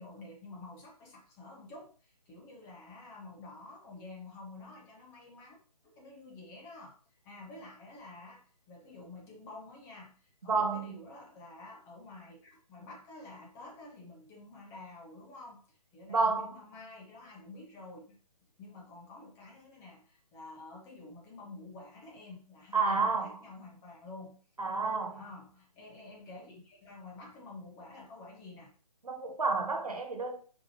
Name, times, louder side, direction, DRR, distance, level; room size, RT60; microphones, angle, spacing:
voice 1, 0.0-5.6 5.8-7.0 7.2-18.2 18.6-24.4 25.1-28.7, left 2 dB, 15° left, 1.6 m, -49 dB
voice 2, 10.5-11.0 16.1-16.5 22.7-23.4 24.6-25.2 29.0-30.4, right 4 dB, 65° right, 1.6 m, -30 dB
6.9 x 5.2 x 3.0 m
figure-of-eight pair, 145°, 20 cm